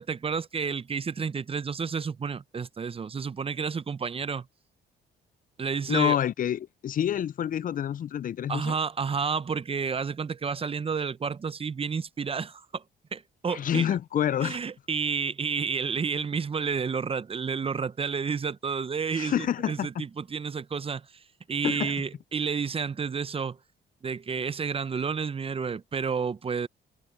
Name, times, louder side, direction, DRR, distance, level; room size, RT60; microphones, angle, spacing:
voice 1, 0.0-4.5 5.6-6.2 8.5-12.8 13.1-13.9 14.4-23.6 24.0-26.7, right 5 dB, 30° right, 0.6 m, -30 dB
voice 2, 5.9-8.7 13.5-14.6 19.1-20.0 21.6-21.9, left 10 dB, 45° left, 0.4 m, -28 dB
cardioid pair, 90°, 20 cm